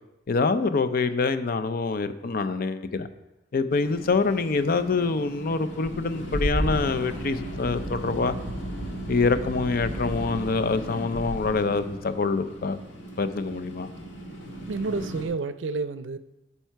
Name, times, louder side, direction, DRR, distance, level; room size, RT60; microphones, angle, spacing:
voice 1, 0.3-3.1 3.5-8.3 9.1-12.8 13.2-13.9, left 4 dB, 55° left, 12 dB, 0.5 m, -25 dB
sound 1, 3.7-15.2, equal, 80° left, 1.6 m, -34 dB
voice 2, 14.7-16.2, right 3 dB, 85° right, 13 dB, 0.5 m, -29 dB
12.0 x 5.6 x 4.5 m, 0.95 s
head